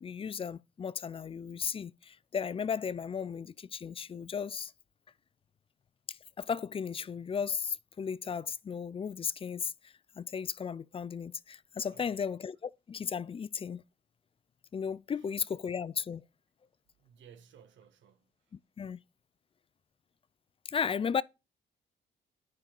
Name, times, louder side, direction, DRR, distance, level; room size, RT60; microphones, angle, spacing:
voice 1, 0.0-4.7 6.1-13.8 14.7-16.2 18.8-19.0 20.7-21.2, left 6 dB, 30° left, 0.3 m, -35 dB
voice 2, 11.9-12.3 15.1-15.3 17.0-18.5, right 7 dB, 70° right, 1.3 m, -58 dB
9.7 x 5.3 x 4.4 m
cardioid pair, 90°, 20 cm